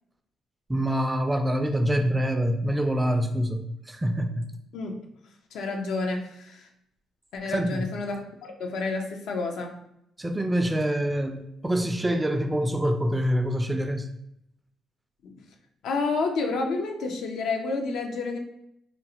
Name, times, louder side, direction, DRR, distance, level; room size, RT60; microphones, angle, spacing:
voice 1, 0.7-4.4 7.4-7.9 10.2-14.1, equal, 15° right, 6 dB, 0.3 m, -26 dB
voice 2, 5.5-6.7 7.3-9.7 15.2-15.3 15.8-18.4, left 3 dB, 80° left, 3 dB, 0.5 m, -29 dB
3.8 x 2.0 x 2.8 m, 0.78 s
cardioid pair, 90°, 0 cm